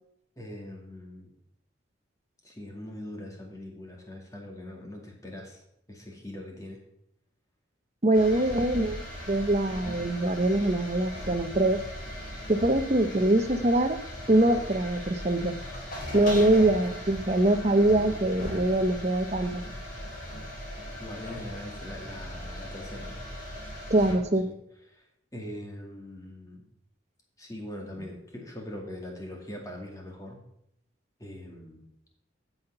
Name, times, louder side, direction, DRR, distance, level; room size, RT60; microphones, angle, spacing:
voice 1, 0.4-1.3 2.4-5.6 5.9-6.8 21.0-23.2 24.5-24.6 24.9-25.0 25.3-26.7 27.4-30.4 31.2-31.8, left 1 dB, 15° left, 0 dB, 2.3 m, -42 dB
voice 2, 8.0-11.8 12.5-14.0 14.3-15.6 16.1-19.6 23.9-24.5, right 1 dB, 35° right, 8 dB, 0.9 m, -23 dB
sound 1, 8.1-24.1, equal, 45° left, 3.8 m, -38 dB
15.0 x 5.8 x 5.6 m, 0.76 s
head